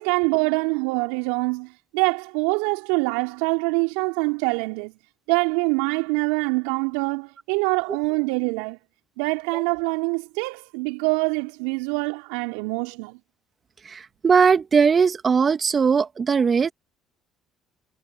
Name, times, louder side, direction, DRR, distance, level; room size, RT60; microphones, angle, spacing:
voice 1, 0.0-4.9 5.3-8.8 9.2-13.2, right 31 dB, 75° right, 3.3 m, -25 dB
voice 2, 13.8-16.7, right 6 dB, 40° right, 2.1 m, -19 dB
hypercardioid pair, 55°, 0 cm